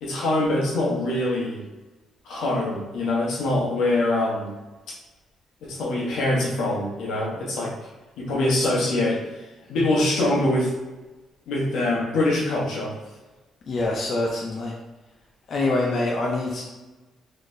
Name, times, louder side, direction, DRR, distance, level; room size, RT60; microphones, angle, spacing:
voice 1, 0.0-1.6 2.2-4.5 5.6-7.7 8.2-9.2 9.7-10.7 11.5-12.9, left 1 dB, 80° left, -3 dB, 1.1 m, -24 dB
voice 2, 13.7-14.7 15.5-16.6, left 2 dB, 45° left, -2 dB, 0.6 m, -25 dB
4.1 x 3.2 x 2.7 m, 1.2 s
cardioid pair, 140°, 0 cm